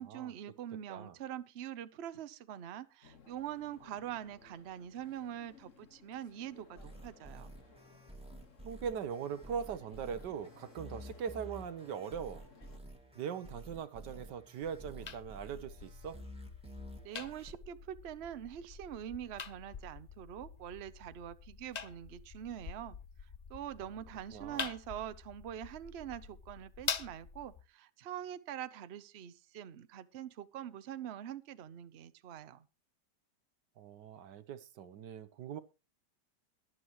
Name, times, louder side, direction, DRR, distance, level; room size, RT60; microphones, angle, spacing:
voice 1, 0.0-7.5 17.0-23.0 23.5-32.7, right 10 dB, 50° right, 0.8 m, -44 dB
sound 1, 3.0-12.8, left 5 dB, 50° left, 1.8 m, -60 dB
sound 2, 6.8-17.5, equal, 5° right, 2.0 m, -51 dB
voice 2, 8.6-12.4 13.1-16.2 24.3-24.7 33.8-35.6, right 7 dB, 90° right, 1.5 m, -41 dB
sound 3, 14.6-27.6, left 6 dB, 80° left, 0.3 m, -46 dB
22.5 x 7.8 x 3.1 m
omnidirectional pair, 1.8 m